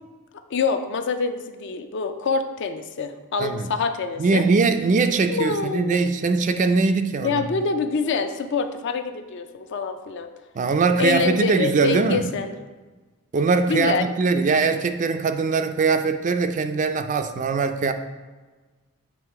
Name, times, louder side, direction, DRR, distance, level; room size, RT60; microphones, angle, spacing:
voice 1, 0.5-4.5 5.3-6.1 7.2-10.3 11.0-12.5 13.7-14.1, left 5 dB, 55° left, 8 dB, 0.4 m, -25 dB
voice 2, 3.4-3.7 4.2-7.5 10.5-12.2 13.3-17.9, right 4 dB, 35° right, 8 dB, 0.3 m, -21 dB
7.6 x 3.1 x 4.6 m, 1.3 s
head